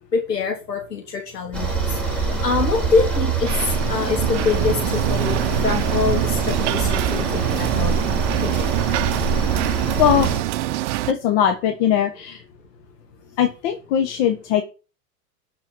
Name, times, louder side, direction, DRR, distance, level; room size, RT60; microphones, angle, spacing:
voice 1, 0.1-8.0 8.4-8.7, left 4 dB, 85° left, 2 dB, 1.9 m, -25 dB
sound 1, 1.5-10.4, right 4 dB, ahead, 4.4 m, -24 dB
sound 2, 3.4-11.1, right 16 dB, 50° right, 0.7 m, -25 dB
voice 2, 11.1-12.4 13.4-14.6, left 9 dB, 45° left, 6 dB, 1.4 m, -20 dB
11.5 x 4.6 x 6.3 m, 0.33 s
figure-of-eight pair, 100°, 47 cm